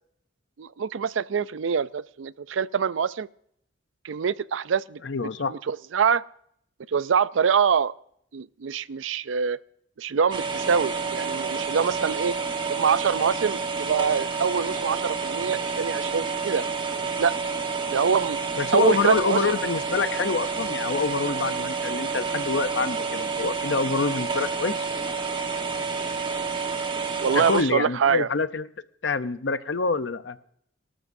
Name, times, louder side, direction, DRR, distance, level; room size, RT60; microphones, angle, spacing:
voice 1, 0.6-3.3 4.0-5.0 5.5-6.2 6.9-7.9 8.3-9.6 10.0-12.4 12.7-16.6 17.2-17.4 17.9-18.4 18.7-19.4 27.2-28.3, right 6 dB, 80° right, 17 dB, 0.5 m, -24 dB
voice 2, 5.0-5.5 18.6-24.7 27.3-28.7 29.0-30.4, left 4 dB, 65° left, 13 dB, 0.7 m, -26 dB
sound 1, 10.3-27.6, right 4 dB, 25° right, 1.2 m, -29 dB
24.5 x 12.5 x 2.7 m, 0.68 s
head